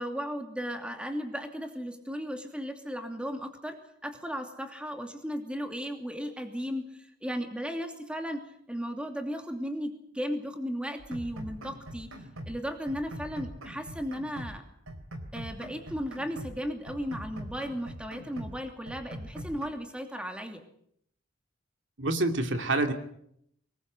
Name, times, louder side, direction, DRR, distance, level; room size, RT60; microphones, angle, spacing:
voice 1, 0.0-8.4 8.7-12.1 12.5-14.6 15.3-20.6, equal, 5° right, 5 dB, 2.7 m, -35 dB
sound 1, 11.0-12.6 12.9-14.6 14.9-16.6 16.9-18.6 18.9-19.7, equal, 90° right, 3.9 m, -42 dB
voice 2, 22.0-22.9, right 2 dB, 60° right, 6 dB, 2.5 m, -27 dB
24.5 x 19.5 x 7.9 m, 0.72 s
head